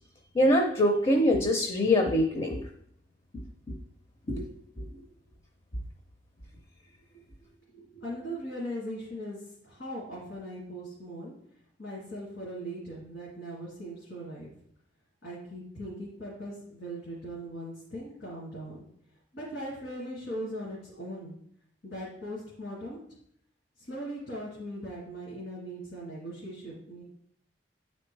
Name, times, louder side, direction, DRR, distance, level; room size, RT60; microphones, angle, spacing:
voice 1, 0.3-2.6 4.4-4.5 4.8-4.9, left 1 dB, 30° left, 3 dB, 0.6 m, -23 dB
voice 2, 7.7-11.3 11.8-14.5 15.2-18.8 19.3-21.4 21.8-23.0 23.8-27.0, equal, 75° left, -7 dB, 2.1 m, -39 dB
9.2 x 4.3 x 3.2 m, 0.71 s
head